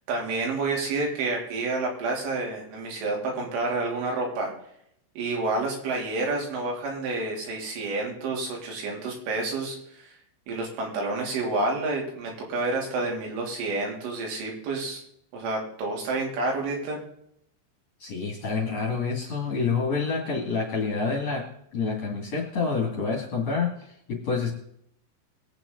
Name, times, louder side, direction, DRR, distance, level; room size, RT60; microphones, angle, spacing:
voice 1, 0.1-4.5 5.2-10.0 10.5-15.0 15.3-17.0, right 3 dB, 80° right, 0 dB, 5.7 m, -29 dB
voice 2, 18.0-21.4 21.7-23.7 24.1-24.5, left 4 dB, 40° left, -4 dB, 2.9 m, -27 dB
22.5 x 8.8 x 4.0 m, 0.71 s
omnidirectional pair, 5.6 m